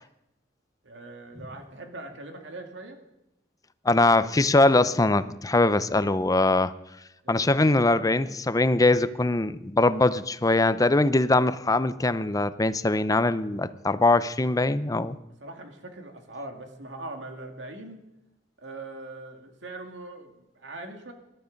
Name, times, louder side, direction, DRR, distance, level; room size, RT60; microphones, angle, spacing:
voice 1, 0.8-3.0 7.2-7.3 15.4-18.0 18.6-21.1, right 2 dB, 85° right, 5 dB, 2.2 m, -41 dB
voice 2, 3.8-6.7 7.3-15.2, left 2 dB, 20° left, 14 dB, 0.6 m, -22 dB
20.5 x 12.5 x 5.2 m, 0.92 s
head